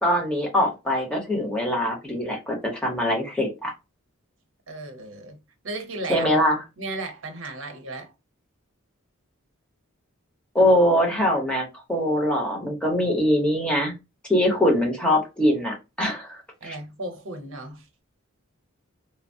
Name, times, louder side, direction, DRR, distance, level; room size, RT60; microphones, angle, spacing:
voice 1, 0.0-3.7 6.1-6.6 10.5-13.9 14.3-16.7, equal, 5° left, 0.8 m, -23 dB
voice 2, 4.7-5.4 5.6-6.3 6.8-8.1 16.6-17.9, right 2 dB, 65° right, 0.7 m, -35 dB
3.1 x 2.0 x 2.6 m
head